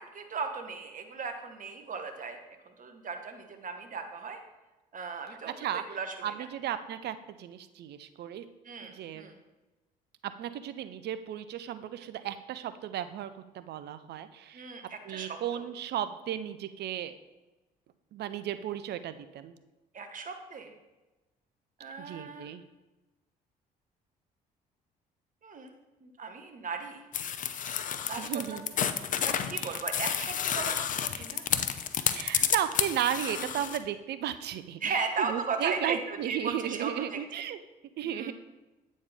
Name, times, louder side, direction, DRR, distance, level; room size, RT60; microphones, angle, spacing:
voice 1, 0.0-4.4 4.9-6.5 8.6-9.4 14.5-15.7 19.9-20.7 21.8-22.5 25.4-25.7 26.0-27.0 28.0-28.6 29.2-31.4 33.2-33.5 34.8-37.2 38.0-38.3, right 5 dB, 40° right, 6 dB, 1.1 m, -37 dB
voice 2, 6.2-8.4 8.8-9.3 10.2-14.7 15.0-17.1 18.1-19.6 22.0-22.6 28.2-28.7 29.6-29.8 32.1-37.6 38.0-38.3, right 10 dB, 55° right, 12 dB, 0.5 m, -35 dB
sound 1, 27.1-33.8, left 8 dB, 40° left, 0.5 m, -30 dB
8.5 x 4.3 x 3.4 m, 1.1 s
hypercardioid pair, 50°, 20 cm